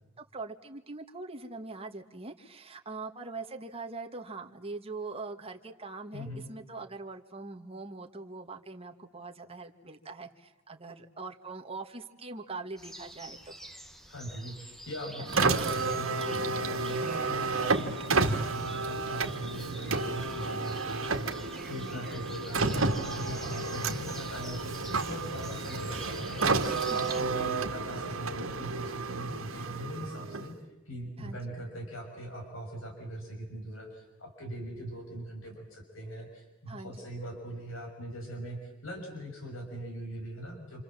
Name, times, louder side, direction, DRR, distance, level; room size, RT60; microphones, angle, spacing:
voice 1, 0.2-13.5 15.2-15.3 21.7-22.1 26.9-27.0 31.2-31.4 36.7-37.0, right 3 dB, 30° right, 3 dB, 2.0 m, -42 dB
voice 2, 6.1-6.5 14.1-30.5 30.9-40.8, equal, 75° left, 2 dB, 6.0 m, -41 dB
sound 1, 12.8-27.2, right 1 dB, ahead, 1.3 m, -47 dB
Car, 15.2-30.7, right 3 dB, 80° right, 2.0 m, -31 dB
28.5 x 27.5 x 7.6 m, 1.0 s
head